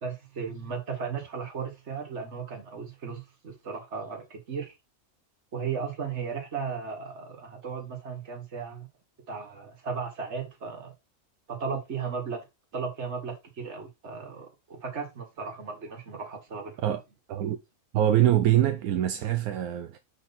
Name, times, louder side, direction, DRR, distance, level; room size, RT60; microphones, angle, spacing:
voice 1, 0.0-4.7 5.5-8.9 9.3-10.9 11.5-12.4 12.7-17.0, right 5 dB, 50° right, 1.9 m, -36 dB
voice 2, 17.9-20.0, right 12 dB, 80° right, 1.1 m, -24 dB
5.6 x 4.9 x 4.2 m
omnidirectional pair, 1.5 m